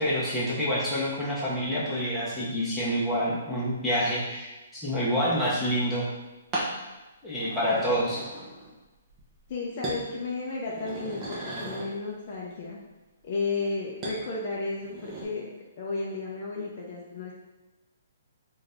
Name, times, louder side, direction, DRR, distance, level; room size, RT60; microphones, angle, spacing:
voice 1, 0.0-6.1 7.2-8.2, equal, 5° left, -9 dB, 1.0 m, -27 dB
sound 1, 5.2-5.5 6.5-6.8 7.3-8.8 9.1-9.5 9.8-10.1 10.5-12.0 14.0-14.2 14.7-15.2, right 2 dB, 20° right, 0.9 m, -37 dB
voice 2, 9.5-12.8 13.2-17.3, left 3 dB, 40° left, -3 dB, 0.7 m, -33 dB
4.0 x 2.6 x 3.3 m, 1.1 s
hypercardioid pair, 160°, 0 cm